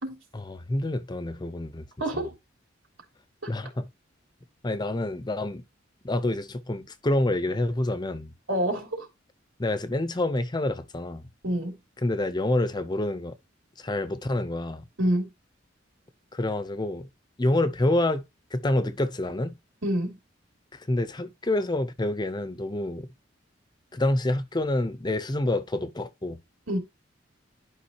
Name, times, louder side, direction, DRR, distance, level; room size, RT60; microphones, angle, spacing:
voice 1, 0.3-1.8 2.1-2.3 3.5-3.9 4.6-5.6 6.0-8.3 9.6-11.2 12.0-13.4 13.8-14.8 16.3-17.1 17.4-18.2 18.5-19.6 20.7-23.1 23.9-26.4, left 1 dB, 20° left, 0.6 m, -27 dB
voice 2, 2.0-2.4 3.4-3.5 8.5-9.1 11.4-11.7 15.0-15.3 19.8-20.2 26.7-26.8, right 1 dB, 90° right, 3.5 m, -27 dB
11.5 x 5.2 x 2.8 m
head